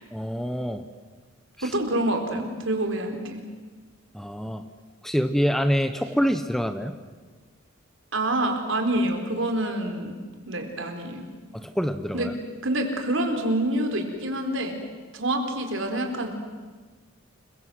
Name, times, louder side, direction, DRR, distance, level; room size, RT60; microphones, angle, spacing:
voice 1, 0.1-0.8 1.6-1.7 4.1-4.6 5.0-6.9 11.5-12.3, equal, ahead, 9 dB, 1.0 m, -26 dB
voice 2, 1.6-3.4 8.1-10.2 10.5-11.2 12.1-12.3 12.6-14.8 15.1-16.3, right 1 dB, 65° right, 4 dB, 4.3 m, -27 dB
29.5 x 22.5 x 7.9 m, 1.4 s
head